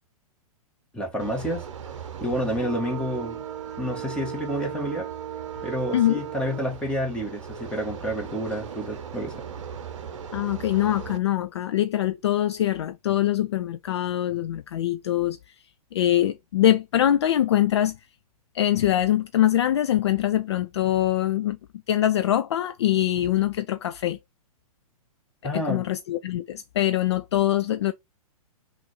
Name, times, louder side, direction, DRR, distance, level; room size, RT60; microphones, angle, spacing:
voice 1, 0.9-1.6 2.2-3.4 3.8-5.1 5.6-9.4 25.4-25.8, equal, 5° left, 1.6 m, -29 dB
sound 1, 1.2-11.2, right 8 dB, 55° right, 0.8 m, -37 dB
voice 2, 10.3-15.4 15.9-18.0 18.5-21.6 21.9-24.2 25.5-27.9, left 12 dB, 45° left, 0.4 m, -23 dB
5.9 x 2.5 x 3.1 m
figure-of-eight pair, 110°, 19 cm